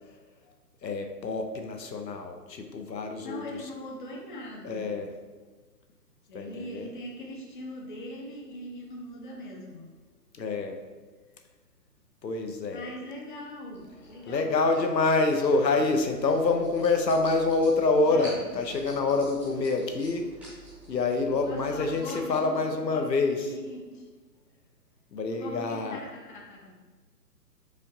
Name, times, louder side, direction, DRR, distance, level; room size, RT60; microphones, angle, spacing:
voice 1, 0.8-3.4 4.6-5.1 6.3-6.8 10.3-10.8 12.2-12.8 14.3-20.3 20.9-23.4 25.1-26.0, left 3 dB, 85° left, 5 dB, 0.7 m, -26 dB
voice 2, 3.2-5.0 6.3-9.9 12.7-14.5 18.0-18.5 21.3-22.6 22.9-23.1 23.4-24.0 25.4-26.7, left 1 dB, 30° left, 0 dB, 0.6 m, -41 dB
sound 1, 13.7-22.4, right 1 dB, 5° right, 0.7 m, -49 dB
5.0 x 3.7 x 2.7 m, 1.3 s
figure-of-eight pair, 135°, 49 cm